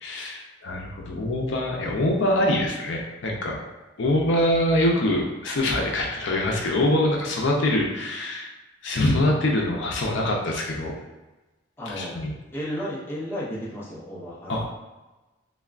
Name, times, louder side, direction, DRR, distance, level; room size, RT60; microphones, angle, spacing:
voice 1, 0.0-3.6 4.0-8.5 8.8-10.9 11.9-12.3 14.5-14.6, left 1 dB, 65° left, -1 dB, 0.5 m, -24 dB
voice 2, 11.8-12.1 12.5-14.7, equal, 10° left, -7 dB, 0.5 m, -33 dB
3.3 x 2.3 x 2.4 m, 1.1 s
head